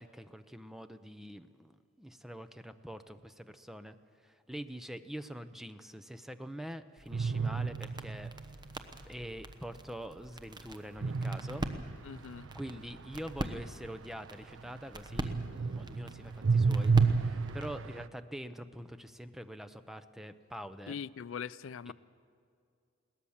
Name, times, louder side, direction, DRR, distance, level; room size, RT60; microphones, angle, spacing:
voice 1, 0.0-4.0 4.2-8.3 9.1-11.7 12.5-20.9 21.9-22.0, equal, ahead, 10 dB, 0.7 m, -45 dB
sound 1, 7.0-17.8, right 1 dB, 20° right, 1.1 m, -44 dB
sound 2, 7.1-8.8 11.0-14.8 15.1-18.1, right 4 dB, 75° right, 0.6 m, -31 dB
voice 2, 12.0-12.5 20.9-21.9, left 7 dB, 70° left, 17 dB, 0.4 m, -41 dB
21.5 x 18.0 x 7.2 m, 2.4 s
head